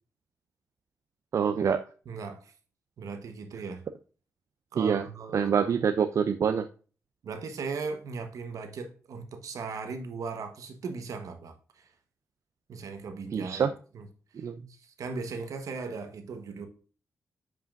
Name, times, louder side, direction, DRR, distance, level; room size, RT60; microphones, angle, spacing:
voice 1, 1.3-1.8 4.8-5.0 5.3-6.7 13.3-13.7 14.4-14.6, right 7 dB, 65° right, 0.5 m, -25 dB
voice 2, 2.0-2.5 3.0-3.8 4.7-5.7 7.2-11.9 12.7-14.1 14.7-16.7, right 4 dB, 80° right, 1.3 m, -38 dB
7.5 x 5.5 x 2.6 m
wide cardioid pair, 105°, 6 cm